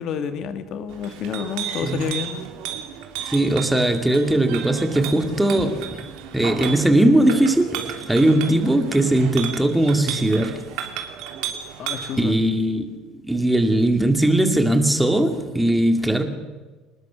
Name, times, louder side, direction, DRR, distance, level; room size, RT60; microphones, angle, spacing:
voice 1, 0.0-2.4 11.8-12.4, left 7 dB, 45° left, 1.8 m, -29 dB
Chink clink, 0.9-12.2, right 9 dB, 70° right, 3.0 m, -33 dB
voice 2, 3.3-6.1 6.3-10.6 12.2-12.9 13.2-16.2, right 1 dB, 5° right, 2.2 m, -19 dB
27.0 x 20.0 x 6.2 m
cardioid pair, 170°, 0 cm